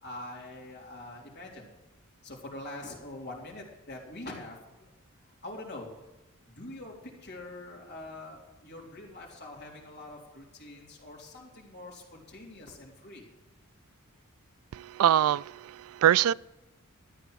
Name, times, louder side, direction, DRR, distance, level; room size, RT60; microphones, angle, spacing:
voice 1, 0.0-1.7 2.2-4.9 5.4-5.9 6.5-6.9 7.2-13.2, left 2 dB, 50° left, 3.5 m, -44 dB
voice 2, 14.7-16.3, right 10 dB, 75° right, 0.3 m, -24 dB
13.0 x 9.1 x 6.2 m
head